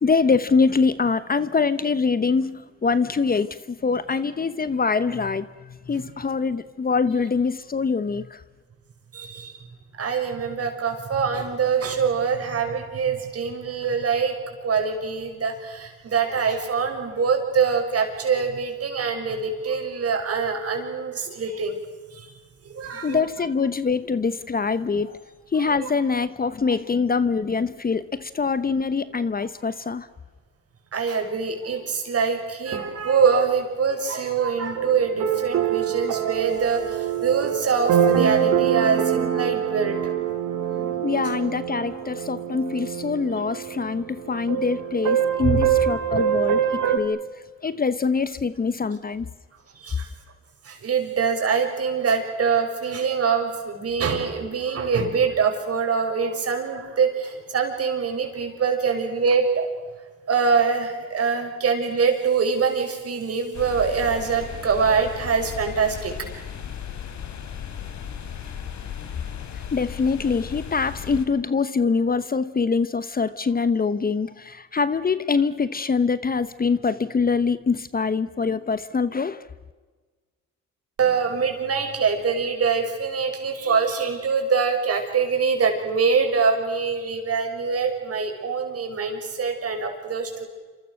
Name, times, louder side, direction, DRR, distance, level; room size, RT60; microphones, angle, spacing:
voice 1, 0.0-8.4 23.0-25.2 25.5-30.1 40.7-47.3 47.6-49.3 69.7-79.5, left 5 dB, 30° left, 1.0 m, -24 dB
voice 2, 9.1-9.6 10.0-21.8 22.1-22.3 22.7-23.2 25.8-25.9 30.9-40.1 45.4-45.6 46.1-46.2 49.8-50.1 50.6-59.7 60.3-66.3 81.0-90.5, right 5 dB, 50° right, 6.1 m, -24 dB
sound 1, 34.8-47.0, right 9 dB, 80° right, 2.7 m, -24 dB
sound 2, 63.5-71.2, left 8 dB, 70° left, 3.4 m, -36 dB
27.5 x 27.0 x 6.5 m
cardioid pair, 90°, 30 cm